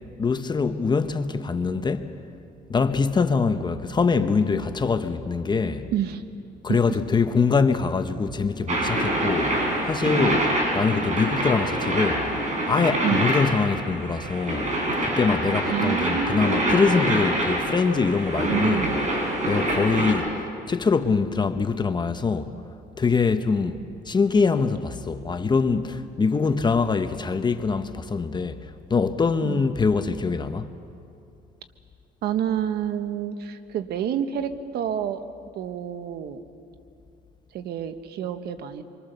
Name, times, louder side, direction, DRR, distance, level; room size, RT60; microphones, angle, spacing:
voice 1, 0.2-2.2 2.7-5.9 6.6-12.3 12.7-14.7 15.0-18.9 19.5-20.3 20.7-22.5 23.0-30.7, left 4 dB, 25° left, 1.0 m, -24 dB
voice 2, 5.9-6.2 6.7-7.0 13.0-13.3 15.6-16.8 18.4-19.0 29.4-29.6 32.2-35.2 35.5-36.4 37.5-38.8, right 9 dB, 70° right, 1.4 m, -28 dB
sound 1, 8.7-20.1, right 1 dB, 45° right, 6.4 m, -25 dB
26.0 x 24.5 x 6.9 m
cardioid pair, 110°, 17 cm